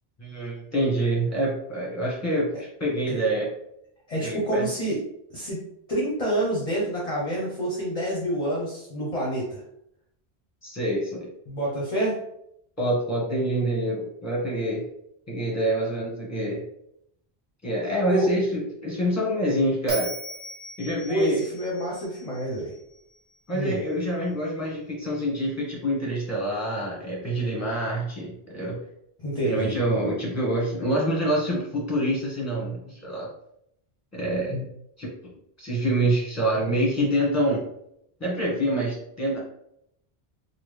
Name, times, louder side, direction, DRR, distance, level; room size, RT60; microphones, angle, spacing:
voice 1, 0.2-3.5 4.2-4.7 10.6-11.3 12.8-14.8 15.3-16.6 17.6-20.1 20.8-21.4 23.5-28.8 29.4-33.3 34.1-34.7 35.0-35.1 35.6-37.6 38.2-39.4, right 1 dB, 15° left, -4 dB, 1.3 m, -26 dB
voice 2, 4.1-5.0 5.3-5.6 5.9-9.6 11.5-12.2 18.1-18.3 21.1-22.7 23.5-23.8 29.2-29.8, right 1 dB, 40° left, -4 dB, 0.8 m, -27 dB
Bell, 19.9-23.1, right 2 dB, 50° right, 1.3 m, -38 dB
3.6 x 2.3 x 3.2 m, 0.75 s
omnidirectional pair, 1.0 m